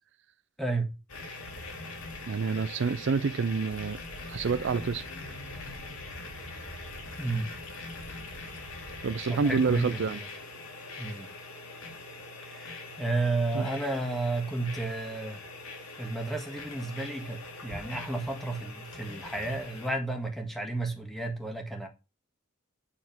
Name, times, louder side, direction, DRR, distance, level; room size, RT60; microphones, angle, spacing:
voice 1, 0.6-1.0 7.2-7.5 9.2-10.3 11.0-11.3 12.4-15.4 16.0-21.9, right 2 dB, ahead, 1.6 m, -32 dB
sound 1, 1.1-19.9, left 3 dB, 90° left, 2.2 m, -42 dB
voice 2, 2.3-4.0 4.3-5.0 9.0-10.2 13.5-13.7, right 5 dB, 60° right, 0.4 m, -28 dB
9.0 x 4.3 x 5.9 m
head